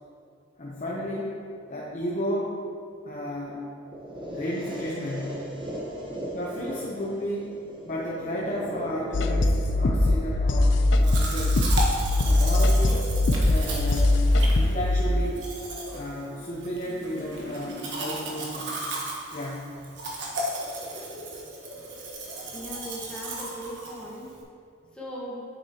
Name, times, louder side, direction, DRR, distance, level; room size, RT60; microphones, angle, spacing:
voice 1, 0.6-1.4 1.7-2.6 3.0-3.6 4.3-5.5 6.3-7.6 7.8-11.6 12.2-14.2 14.5-15.5 15.9-18.9 19.3-19.7, equal, 40° left, -4 dB, 0.8 m, -33 dB
sound 1, 3.9-11.9, equal, 25° right, 1.2 m, -38 dB
sound 2, 9.1-15.0, left 2 dB, 70° left, 0.5 m, -21 dB
Domestic sounds home sounds, 11.0-24.4, right 1 dB, 70° right, 1.4 m, -35 dB
voice 2, 22.5-24.3 24.9-25.4, equal, 5° left, -6 dB, 1.4 m, -38 dB
9.2 x 7.8 x 2.9 m, 2.5 s
head